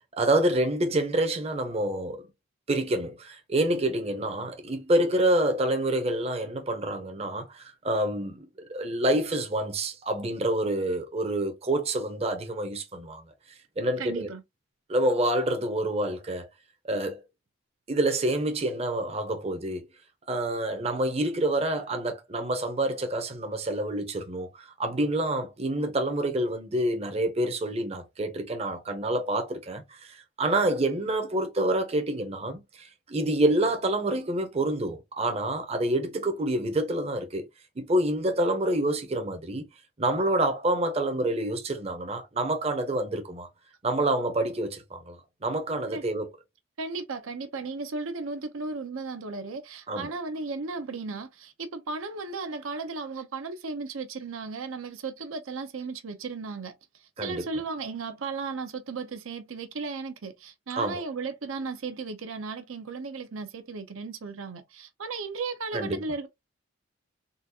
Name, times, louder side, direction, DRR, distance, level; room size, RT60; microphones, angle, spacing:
voice 1, 0.2-2.2 2.7-8.4 8.7-13.2 13.8-14.3 14.9-16.5 16.8-17.2 17.9-19.9 20.3-37.4 37.8-39.6 40.0-43.5 43.8-45.2 45.4-46.3 49.9-50.1 57.2-57.4 60.8-61.0 65.7-66.0, right 1 dB, 30° right, 0.6 m, -27 dB
voice 2, 14.0-14.4 45.9-46.0 46.8-56.7 57.2-66.3, right 4 dB, 80° right, 0.6 m, -35 dB
3.8 x 2.4 x 2.7 m
head